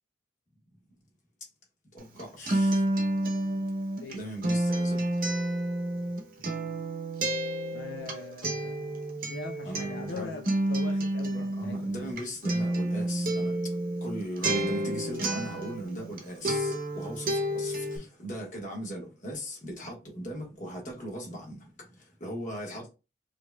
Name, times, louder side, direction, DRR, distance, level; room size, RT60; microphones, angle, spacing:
voice 1, 1.9-2.9 4.1-5.1 6.4-6.5 9.6-10.3 11.3-22.9, equal, 45° left, 1.5 m, -39 dB
Acoustic guitar, 2.0-16.2 16.4-18.0, right 1 dB, 50° right, 0.7 m, -30 dB
voice 2, 7.7-12.1 22.8-22.9, left 3 dB, 80° left, 0.5 m, -42 dB
4.9 x 2.8 x 2.2 m
head